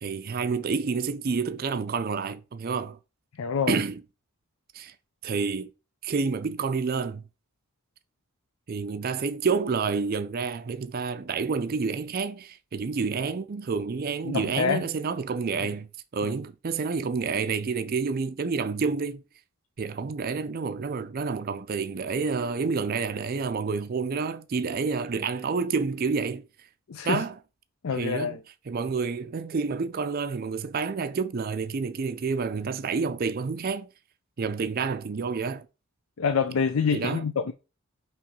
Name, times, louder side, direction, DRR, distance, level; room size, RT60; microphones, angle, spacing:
voice 1, 0.0-3.0 3.7-4.0 4.7-4.9 5.2-5.7 6.0-7.2 8.7-19.2 19.8-26.4 27.0-27.4 27.9-28.4 28.7-33.9 34.4-35.7 36.9-37.3, right 5 dB, 45° right, 0.4 m, -29 dB
voice 2, 3.4-3.8 14.2-14.8 16.2-16.3 26.9-27.2 27.8-28.4 36.2-37.5, left 6 dB, 70° left, 0.5 m, -26 dB
5.7 x 3.1 x 5.3 m
head